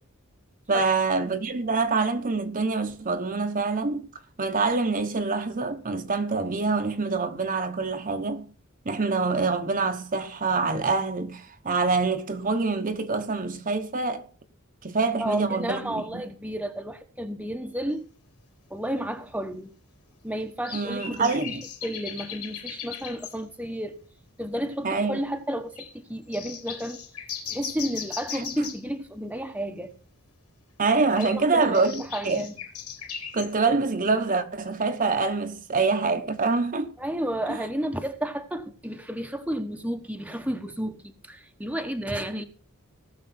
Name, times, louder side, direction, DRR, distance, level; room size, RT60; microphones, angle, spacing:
voice 1, 0.7-4.0 4.4-8.5 8.8-14.3 14.8-16.0 20.7-21.6 24.8-25.2 28.3-28.4 30.8-32.4 33.3-36.9 37.5-37.6, right 4 dB, 40° right, 1.0 m, -25 dB
voice 2, 15.2-18.0 18.7-19.7 20.2-21.6 21.8-24.0 24.4-27.0 27.5-29.9 31.2-32.6 37.0-42.4, right 1 dB, 5° right, 1.0 m, -32 dB
sound 1, 18.4-18.5 19.2-19.3 20.6-23.4 24.0-24.1 24.4-24.5 24.8-25.2 25.8-25.9 26.3-28.9 31.0-33.5, left 7 dB, 85° left, 3.7 m, -38 dB
18.5 x 6.7 x 4.3 m
head